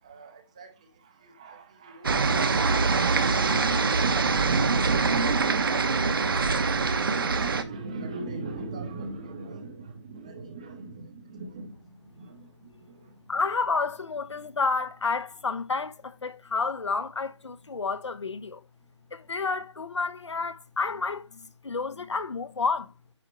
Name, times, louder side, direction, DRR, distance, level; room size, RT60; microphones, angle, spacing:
voice 1, 0.0-13.2, right 3 dB, 15° right, 0.6 m, -42 dB
sound 1, 2.0-7.6, right 4 dB, 50° right, 1.0 m, -24 dB
voice 2, 13.3-18.6 19.1-22.9, left 4 dB, 70° left, 1.0 m, -30 dB
9.6 x 5.8 x 3.1 m
figure-of-eight pair, 170°, 15 cm